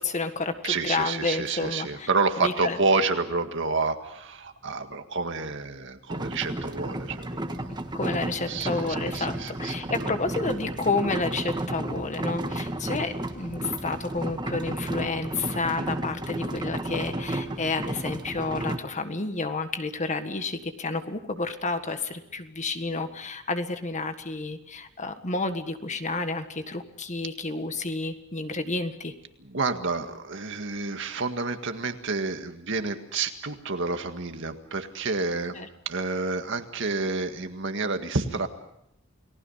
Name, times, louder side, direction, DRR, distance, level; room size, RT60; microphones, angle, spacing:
voice 1, 0.0-2.1 2.4-2.8 7.9-29.1 35.6-35.7, left 3 dB, 35° left, 8 dB, 1.6 m, -30 dB
voice 2, 0.6-7.7 8.5-10.2 29.4-35.6 35.9-38.5, right 3 dB, 65° right, 7 dB, 1.9 m, -29 dB
sound 1, 6.1-18.8, right 1 dB, 20° right, 1.5 m, -32 dB
29.5 x 19.5 x 5.7 m, 0.75 s
head